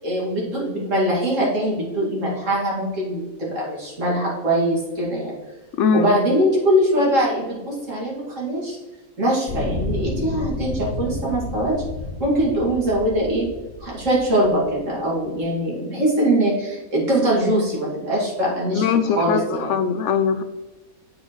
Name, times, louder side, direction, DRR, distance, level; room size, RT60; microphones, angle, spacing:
voice 1, 0.0-5.3 5.9-8.8 9.2-11.8 12.2-13.5 13.8-19.7, right 1 dB, 60° right, -5 dB, 2.7 m, -22 dB
voice 2, 5.8-6.1 18.7-20.4, left 6 dB, 65° left, 10 dB, 0.8 m, -21 dB
sound 1, 9.5-14.7 15.4-15.5, left 1 dB, 45° left, 3.1 m, -31 dB
7.6 x 6.2 x 3.1 m, 1.1 s
omnidirectional pair, 1.5 m